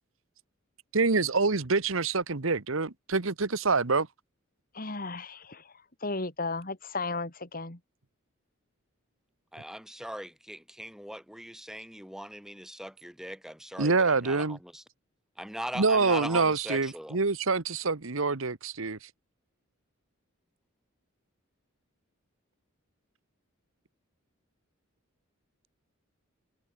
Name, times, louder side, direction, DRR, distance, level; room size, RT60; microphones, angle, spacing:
voice 1, 0.9-4.1 13.8-14.6 15.7-19.0, right 4 dB, 70° right, 1.3 m, -26 dB
voice 2, 4.7-5.7 6.0-7.8, left 3 dB, 40° left, 3.1 m, -34 dB
voice 3, 9.5-14.8 15.4-17.2, equal, ahead, 2.9 m, -40 dB
head